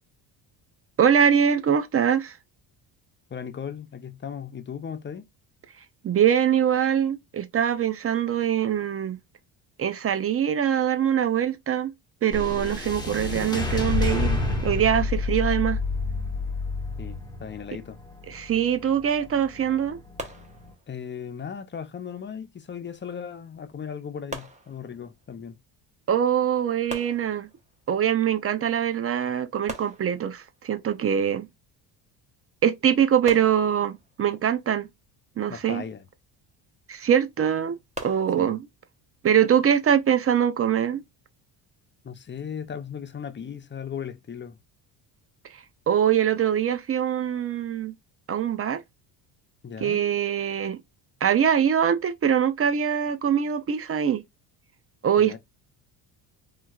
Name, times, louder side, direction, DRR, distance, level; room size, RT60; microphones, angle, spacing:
voice 1, 1.0-2.4 6.0-9.2 9.8-11.9 12.2-15.8 18.3-20.0 26.1-27.5 27.9-31.5 32.6-34.9 35.4-35.8 36.9-38.6 39.2-41.0 45.9-47.9 48.3-48.8 49.8-50.8 51.2-54.2 55.0-55.4, right 9 dB, 30° right, 0.5 m, -23 dB
voice 2, 3.3-5.2 17.0-18.0 20.9-25.6 35.5-36.1 38.4-38.6 42.0-44.6 49.6-50.0 55.2-55.4, left 7 dB, 25° left, 0.5 m, -37 dB
sound 1, 12.3-20.7, left 3 dB, 10° left, 1.1 m, -29 dB
sound 2, 20.2-21.2 24.3-25.4 26.9-27.9 29.7-30.7 33.3-34.3 37.9-38.5, right 1 dB, 15° right, 0.9 m, -40 dB
2.9 x 2.7 x 2.3 m
supercardioid pair, 85°, 49 cm